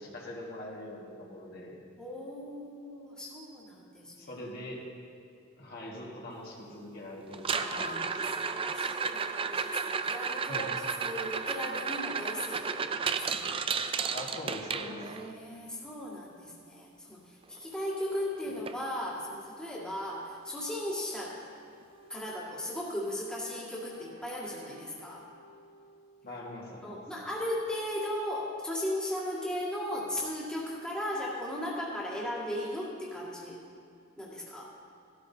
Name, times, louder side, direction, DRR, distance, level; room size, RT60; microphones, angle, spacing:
voice 1, 0.0-1.8 4.2-4.8 5.6-8.1 10.5-10.7 14.1-15.0 18.5-18.6 26.2-27.0, left 1 dB, 50° left, -3 dB, 1.7 m, -42 dB
voice 2, 2.0-4.3 7.4-10.7 11.0-12.9 13.2-14.0 15.0-21.4 22.1-25.3 26.8-33.6 34.2-34.7, left 1 dB, 5° left, -6 dB, 1.9 m, -37 dB
sound 1, 7.3-15.3 17.6-17.7 17.9-18.2 18.7-18.8 19.3-19.4 21.3-21.4, right 5 dB, 25° right, 0.4 m, -33 dB
Wind instrument woodwind instrument, 21.7-26.7, right 2 dB, 55° right, 2.5 m, -56 dB
16.5 x 13.0 x 2.8 m, 2.4 s
head